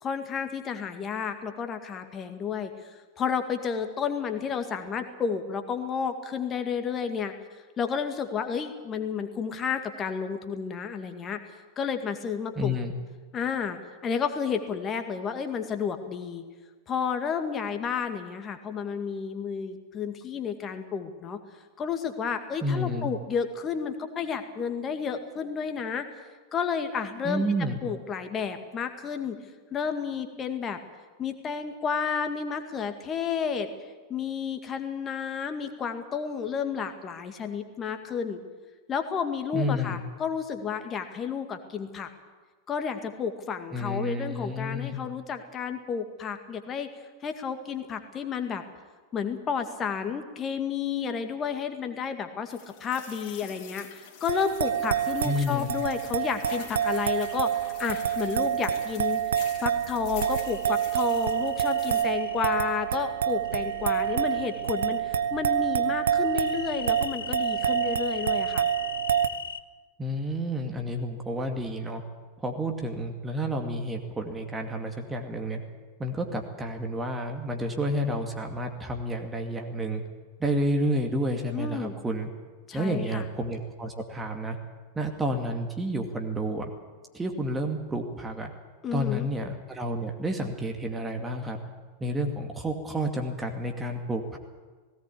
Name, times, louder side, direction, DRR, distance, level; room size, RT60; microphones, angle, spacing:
voice 1, 0.0-2.7 3.2-7.3 7.8-11.4 11.8-12.7 13.3-13.8 14.0-16.4 16.9-21.4 21.8-26.1 26.5-27.4 27.8-29.4 29.7-30.8 31.2-33.7 34.1-38.4 38.9-42.1 42.7-46.9 47.2-48.6 49.1-59.2 59.6-68.7 81.5-81.9 82.7-83.3 88.8-89.3, left 6 dB, 25° left, 7 dB, 2.1 m, -31 dB
voice 2, 12.6-12.9 22.6-23.1 27.2-27.8 39.5-40.0 43.7-45.0 55.2-55.7 70.0-72.0 72.4-75.6 76.0-80.0 80.4-82.3 82.7-84.6 85.0-86.7 87.1-88.5 88.9-91.6 92.0-94.4, equal, 15° right, 3 dB, 2.3 m, -30 dB
sound 1, 52.5-62.0, left 9 dB, 45° left, 3.6 m, -45 dB
sound 2, 54.3-69.3, right 9 dB, 65° right, 0.9 m, -27 dB
sound 3, 60.4-62.5 63.4-65.0 66.2-69.6, left 7 dB, 65° left, 0.6 m, -40 dB
18.0 x 17.0 x 8.6 m, 1.4 s
figure-of-eight pair, 90°, 0 cm